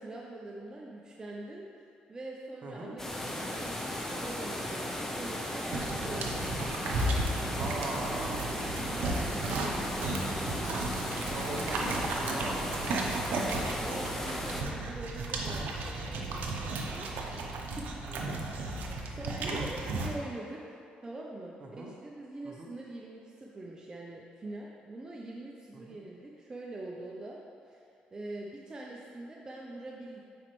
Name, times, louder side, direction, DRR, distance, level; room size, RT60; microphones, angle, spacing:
voice 1, 0.0-6.5 7.5-10.1 13.4-17.5 17.8-17.9 18.6-27.4 27.7-30.2, right 2 dB, 25° right, -3 dB, 0.6 m, -44 dB
voice 2, 2.6-3.0 5.9-6.2 7.6-8.3 11.3-12.6 17.3-17.6 18.1-18.4 19.4-19.9 21.6-21.9 22.4-22.7 25.7-26.0, right 2 dB, 50° right, 0 dB, 0.9 m, -40 dB
sound 1, 3.0-14.6, left 1 dB, 15° left, 0.7 m, -36 dB
sound 2, 5.7-20.2, right 2 dB, 75° right, 0.7 m, -34 dB
9.1 x 4.3 x 3.1 m, 2.5 s
cardioid pair, 110°, 3 cm